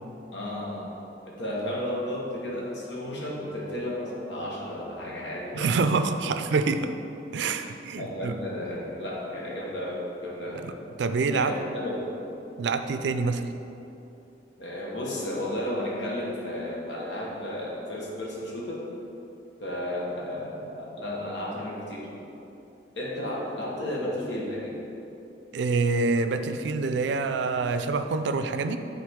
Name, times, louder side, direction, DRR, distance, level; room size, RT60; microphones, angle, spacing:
voice 1, 0.3-0.9 1.2-5.8 7.5-10.6 11.3-12.1 14.6-18.8 19.6-22.1 22.9-24.8, left 1 dB, 75° left, -4 dB, 1.4 m, -33 dB
voice 2, 5.5-6.9 7.3-8.4 10.6-10.7 11.0-11.6 12.6-13.5 25.5-28.8, right 4 dB, 70° right, 9 dB, 0.4 m, -26 dB
9.5 x 3.9 x 3.6 m, 2.9 s
head